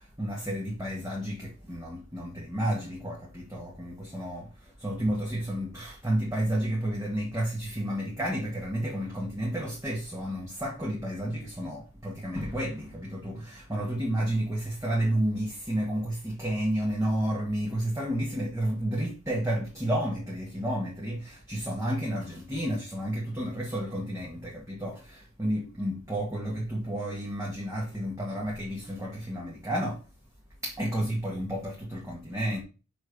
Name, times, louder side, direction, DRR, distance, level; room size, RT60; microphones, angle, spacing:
voice 1, 0.2-4.5 4.8-30.0 30.6-32.6, right 1 dB, 15° right, 1.8 m, -31 dB
6.2 x 5.7 x 6.8 m
head